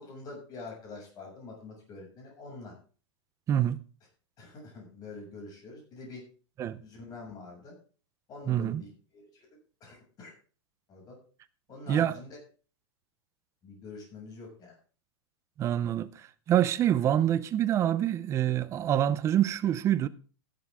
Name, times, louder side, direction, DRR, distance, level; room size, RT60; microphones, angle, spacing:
voice 1, 0.0-2.7 4.4-6.2 6.8-7.7 8.3-9.5 9.8-10.3 10.9-11.2 11.7-12.4 13.6-14.7, left 3 dB, 25° left, 6.9 m, -45 dB
voice 2, 3.5-3.8 6.6-6.8 8.5-8.8 11.9-12.1 15.6-20.1, right 11 dB, 20° right, 0.6 m, -26 dB
14.0 x 11.5 x 3.6 m
supercardioid pair, 155°, 15 cm